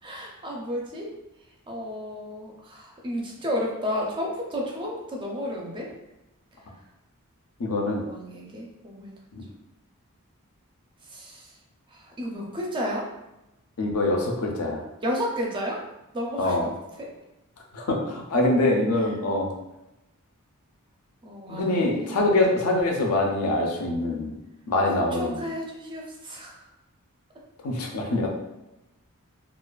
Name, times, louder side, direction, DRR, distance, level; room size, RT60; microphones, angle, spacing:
voice 1, 0.0-1.1 1.7-5.9 8.0-9.1 11.0-11.5 11.9-13.1 15.0-15.8 16.1-16.7 17.0-17.1 21.2-22.2 24.9-26.7, equal, 20° right, -1 dB, 0.4 m, -32 dB
voice 2, 7.6-8.0 9.3-9.4 13.8-14.8 16.4-16.7 17.7-19.5 21.5-24.3 24.7-25.4 27.6-28.3, left 2 dB, 70° left, 1 dB, 0.5 m, -24 dB
2.4 x 2.3 x 2.3 m, 0.95 s
head